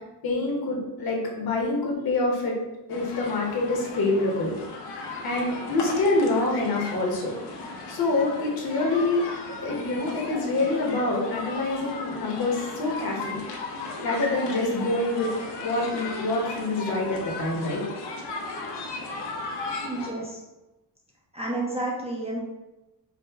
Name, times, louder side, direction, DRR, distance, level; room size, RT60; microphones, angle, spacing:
voice 1, 0.2-2.5 2.9-4.5 5.2-7.3 7.9-9.2 9.6-13.4 14.0-15.3 15.6-17.8, left 2 dB, 60° left, -1 dB, 1.1 m, -26 dB
sound 1, 2.9-20.1, left 3 dB, 80° left, 0.8 m, -36 dB
voice 2, 19.8-20.4 21.3-22.4, right 2 dB, 15° right, -3 dB, 0.4 m, -30 dB
5.0 x 2.1 x 3.5 m, 1.0 s
wide cardioid pair, 180°, 41 cm